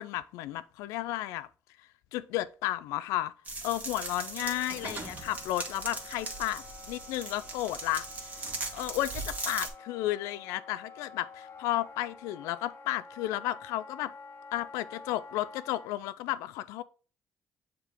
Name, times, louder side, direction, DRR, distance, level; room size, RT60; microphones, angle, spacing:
voice 1, 0.0-1.5 1.8-3.3 3.6-14.1 14.5-16.8, left 15 dB, 90° left, 0.4 m, -33 dB
sound 1, 3.4-9.7, right 3 dB, 30° right, 2.0 m, -39 dB
Wind instrument woodwind instrument, 3.8-15.9, left 4 dB, 50° left, 1.1 m, -50 dB
7.2 x 3.8 x 3.6 m
supercardioid pair, 70°, 5 cm